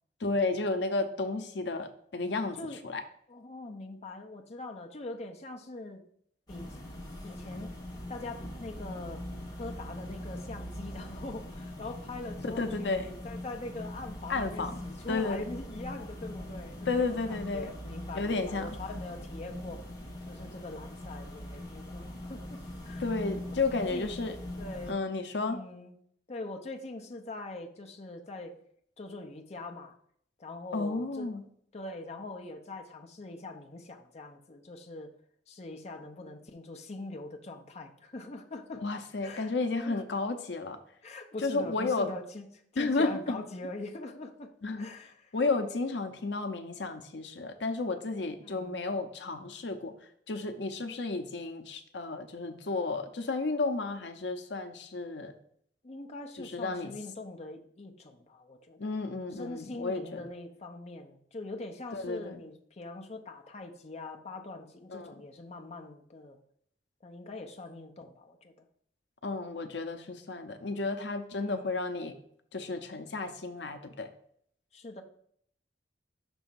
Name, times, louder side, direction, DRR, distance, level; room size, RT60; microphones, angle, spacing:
voice 1, 0.2-2.6 2.8-3.0 12.4-13.1 14.3-14.8 15.1-15.4 16.9-17.7 18.1-18.7 23.0-24.4 24.9-25.6 30.7-31.4 38.8-40.8 41.4-42.1 42.8-43.4 44.6-44.9 45.3-49.9 50.3-55.3 56.4-56.9 58.8-60.2 61.9-62.4 64.9-65.1 69.2-72.1 72.5-74.1, left 3 dB, 80° left, 7 dB, 0.7 m, -32 dB
voice 2, 3.3-6.0 6.5-6.7 7.2-7.7 8.1-9.2 9.6-19.8 20.3-23.1 23.5-24.2 24.6-25.0 25.4-26.0 26.3-28.5 29.0-29.9 30.4-31.3 31.7-35.1 35.5-38.8 39.2-39.5 39.8-40.0 41.0-42.5 42.7-44.5 44.8-45.3 48.4-48.8 55.8-59.0 59.4-66.4 67.0-68.7 71.3-71.8 74.7-75.0, left 2 dB, 40° left, 3 dB, 0.7 m, -43 dB
sound 1, 6.5-24.9, left 1 dB, 25° left, 1.6 m, -42 dB
6.2 x 3.4 x 5.6 m, 0.66 s
head